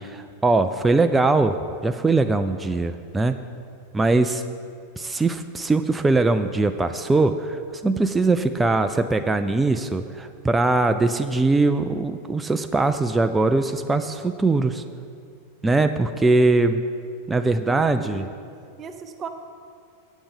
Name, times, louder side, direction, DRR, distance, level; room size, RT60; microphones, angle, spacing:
voice 1, 0.0-3.4 3.9-4.4 5.0-14.8 15.6-16.8 17.3-18.3, right 3 dB, 10° right, 8 dB, 0.3 m, -21 dB
voice 2, 17.7-18.2 18.8-19.3, right 6 dB, 25° right, 7 dB, 0.7 m, -37 dB
8.5 x 8.2 x 5.3 m, 2.3 s
figure-of-eight pair, 90°, 0 cm